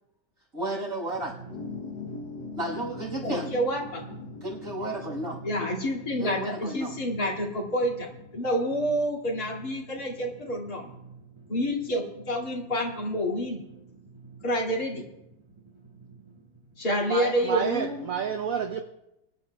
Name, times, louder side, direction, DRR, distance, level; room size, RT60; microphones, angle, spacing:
voice 1, 0.5-1.3 2.6-3.5 4.4-5.4 6.2-6.9, right 1 dB, 45° right, -4 dB, 5.7 m, -32 dB
Drum, 1.1-17.3, right 4 dB, 15° right, 1.5 m, -47 dB
sound 1, 1.5-8.5, left 5 dB, 65° left, 1.6 m, -43 dB
voice 2, 3.2-4.0 5.4-10.9 11.5-13.6 14.4-15.0 16.8-18.0, equal, 50° left, -2 dB, 2.8 m, -28 dB
voice 3, 17.1-18.8, right 7 dB, 65° right, 6 dB, 0.8 m, -29 dB
24.5 x 12.0 x 2.3 m, 0.87 s
omnidirectional pair, 2.1 m